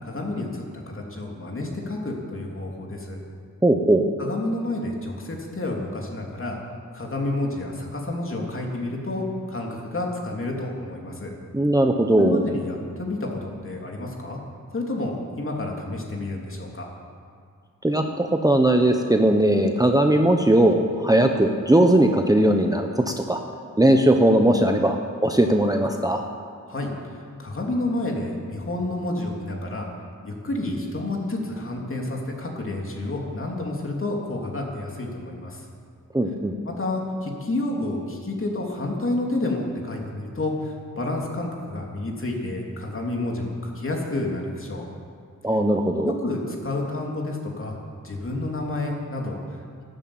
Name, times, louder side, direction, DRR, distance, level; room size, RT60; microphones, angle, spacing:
voice 1, 0.0-3.2 4.2-6.6 6.9-11.3 12.1-14.4 14.7-16.9 26.7-26.9 27.4-29.9 30.2-35.6 36.6-44.9 46.0-47.8 48.0-49.6, left 2 dB, 40° left, 0 dB, 3.1 m, -29 dB
voice 2, 3.6-4.0 11.5-12.4 17.8-23.4 23.8-26.2 36.1-36.6 45.4-46.1, right 1 dB, 10° right, 3 dB, 1.0 m, -19 dB
13.0 x 12.0 x 8.7 m, 2.3 s
cardioid pair, 80°, 32 cm